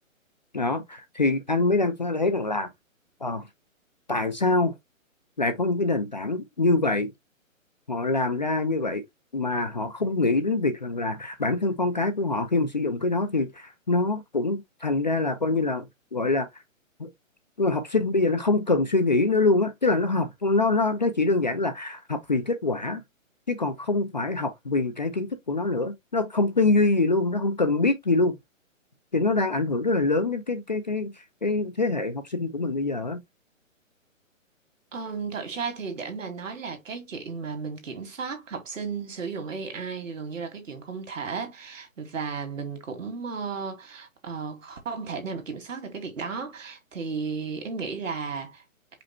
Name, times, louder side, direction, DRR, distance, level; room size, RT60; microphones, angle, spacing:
voice 1, 0.5-2.7 3.2-3.4 4.1-4.7 5.4-7.1 7.9-9.0 9.3-16.5 17.0-17.1 17.6-23.0 23.5-28.4 29.1-31.1 31.4-33.2, left 3 dB, 35° left, 0.5 m, -25 dB
voice 2, 34.9-48.6, right 5 dB, 70° right, 1.9 m, -34 dB
5.1 x 2.1 x 4.2 m
hypercardioid pair, 170°, 40 cm